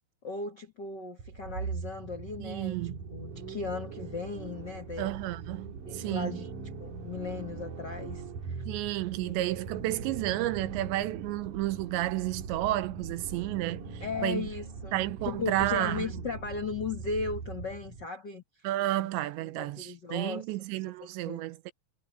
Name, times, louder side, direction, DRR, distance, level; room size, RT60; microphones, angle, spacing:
voice 1, 0.2-2.8 3.1-5.1 5.8-6.5 6.8-8.6 9.1-9.5 14.0-18.4 19.6-20.4 21.0-21.5, left 4 dB, 90° left, 0.9 m, -37 dB
sound 1, 1.2-18.1, right 5 dB, 50° right, 3.7 m, -41 dB
voice 2, 2.4-3.0 5.0-6.3 8.7-14.5 14.9-16.1 18.6-21.7, right 16 dB, 85° right, 3.2 m, -31 dB
omnidirectional pair, 5.0 m